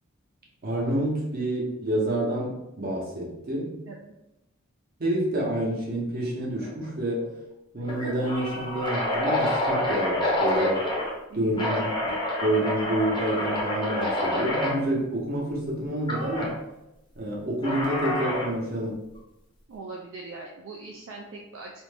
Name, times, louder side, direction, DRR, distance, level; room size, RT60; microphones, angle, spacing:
voice 1, 0.6-3.8 5.0-7.3 7.7-10.9 11.3-12.1 12.4-16.5 17.2-19.0, right 1 dB, 45° right, -3 dB, 0.7 m, -28 dB
sound 1, 6.6-6.9 7.2-7.3 7.8-11.1 11.6-14.8 16.1-16.5 17.6-18.6, left 1 dB, 20° left, 0.6 m, -27 dB
voice 2, 11.3-11.7 19.7-21.7, right 3 dB, 60° right, -1 dB, 0.3 m, -41 dB
2.5 x 2.1 x 3.3 m, 0.91 s
head